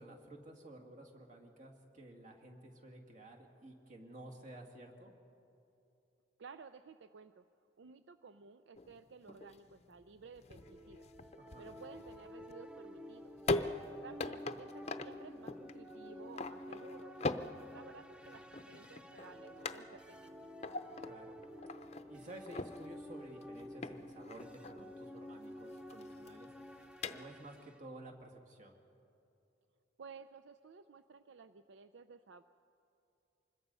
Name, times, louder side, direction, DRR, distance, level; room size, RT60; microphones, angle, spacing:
voice 1, 0.0-5.1 11.4-11.7 14.3-14.4 21.0-21.4 22.1-28.7, right 1 dB, 40° right, 1 dB, 2.3 m, -53 dB
voice 2, 6.4-7.4 7.8-11.1 11.6-13.4 14.0-20.5 30.0-32.4, right 5 dB, 75° right, 11 dB, 0.5 m, -55 dB
sound 1, 8.7-27.6, left 2 dB, 35° left, 0.6 m, -43 dB
sound 2, 10.5-27.8, left 1 dB, 5° right, 0.6 m, -51 dB
25.5 x 21.0 x 5.5 m, 2.7 s
head